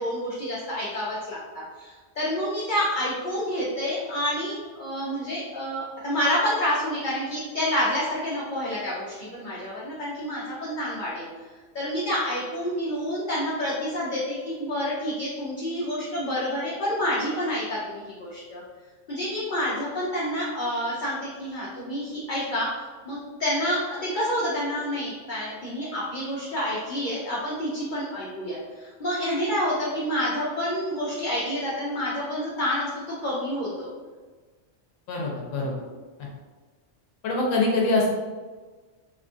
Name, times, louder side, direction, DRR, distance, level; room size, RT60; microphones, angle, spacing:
voice 1, 0.0-1.4 1.8-11.3 11.7-18.6 19.1-22.7 23.0-33.9, equal, 55° left, -6 dB, 0.6 m, -28 dB
voice 2, 35.1-35.8 37.2-38.1, left 2 dB, 85° left, -2 dB, 1.0 m, -24 dB
2.8 x 2.3 x 2.5 m, 1.3 s
omnidirectional pair, 1.3 m